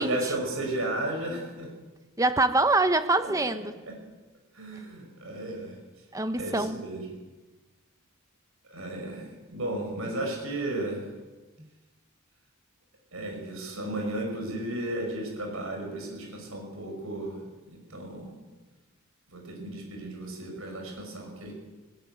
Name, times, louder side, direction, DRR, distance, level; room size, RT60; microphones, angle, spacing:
voice 1, 0.0-1.7 3.2-3.5 3.9-4.0 4.5-5.8 6.3-7.1 8.7-11.1 13.1-18.4 19.3-21.5, right 1 dB, 75° right, 1 dB, 5.7 m, -34 dB
voice 2, 2.2-3.7 6.1-6.8, right 2 dB, 15° right, 10 dB, 1.0 m, -24 dB
18.0 x 17.5 x 9.3 m, 1.2 s
head